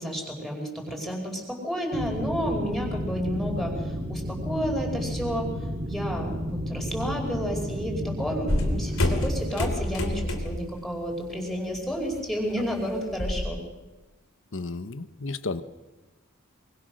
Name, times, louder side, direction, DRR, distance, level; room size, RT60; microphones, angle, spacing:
voice 1, 0.0-5.5 5.9-13.6, equal, ahead, 0 dB, 5.1 m, -31 dB
sound 1, 1.9-9.5, equal, 35° right, 2.0 m, -32 dB
sound 2, 8.5-10.7 11.1-11.4 11.7-13.5, left 1 dB, 85° left, 3.4 m, -28 dB
voice 2, 14.5-15.6, left 3 dB, 65° left, 12 dB, 1.1 m, -33 dB
25.0 x 23.5 x 6.4 m, 1.2 s
head